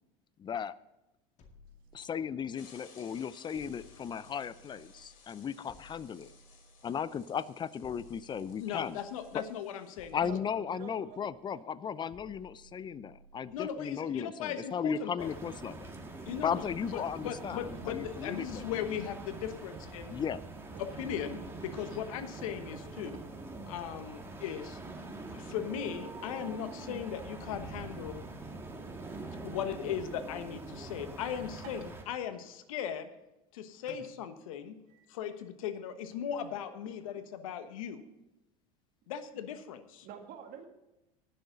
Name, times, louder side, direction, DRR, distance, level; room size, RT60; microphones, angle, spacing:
voice 1, 0.4-0.7 1.9-6.3 6.8-9.0 10.1-15.9 16.4-18.7 20.1-20.4, left 7 dB, 25° left, 18 dB, 0.6 m, -36 dB
sound 1, 1.4-2.7 3.5-5.2 5.7-7.1 7.8-9.4 10.0-11.4 12.1-13.7, left 1 dB, 40° left, 2.2 m, -58 dB
sound 2, 2.5-10.1, left 5 dB, 65° left, 3.8 m, -60 dB
voice 2, 8.6-10.2 13.5-15.3 16.2-20.2 20.8-23.1 23.7-24.8 25.3-28.2 29.4-33.1 33.5-34.8 35.1-38.0 39.1-40.1, left 9 dB, 80° left, 10 dB, 1.3 m, -38 dB
voice 3, 10.2-11.3 17.0-17.1 20.7-20.8 21.8-21.9 23.0-23.2 31.6-31.7 33.8-34.0 34.9-35.1 36.3-36.5 36.8-37.2 40.0-40.6, right 8 dB, 55° right, 4 dB, 2.0 m, -48 dB
sound 3, 15.2-32.0, right 2 dB, 15° right, 2.1 m, -44 dB
18.5 x 6.8 x 4.0 m, 0.95 s
hypercardioid pair, 95°, 17 cm